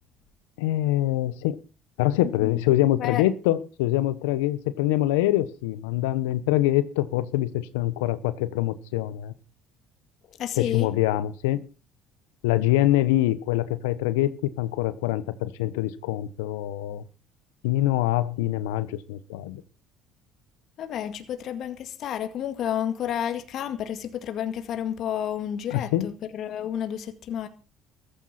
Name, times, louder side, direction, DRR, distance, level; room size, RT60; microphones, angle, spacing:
voice 1, 0.6-1.6 2.0-9.3 10.6-11.6 12.4-14.3 14.6-17.0 17.6-19.6 25.7-26.1, left 14 dB, 85° left, 1.1 m, -24 dB
voice 2, 2.2-2.6 3.0-3.2 10.4-10.9 20.8-27.5, left 9 dB, 60° left, 2.0 m, -31 dB
14.5 x 13.5 x 4.3 m
hypercardioid pair, 65°, 0 cm